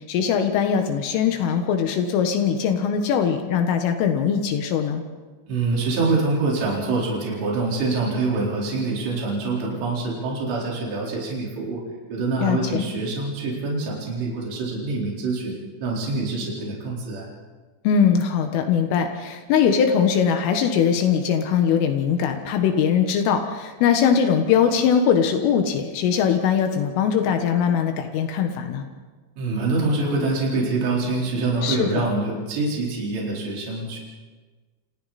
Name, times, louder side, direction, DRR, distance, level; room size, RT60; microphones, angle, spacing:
voice 1, 0.1-5.0 12.4-12.8 17.9-28.9 31.6-32.0, left 7 dB, 80° left, 5 dB, 4.0 m, -21 dB
voice 2, 5.5-11.8 12.1-17.3 29.4-34.0, right 3 dB, 60° right, -4 dB, 6.5 m, -25 dB
29.5 x 27.0 x 4.3 m, 1.4 s
omnidirectional pair, 5.7 m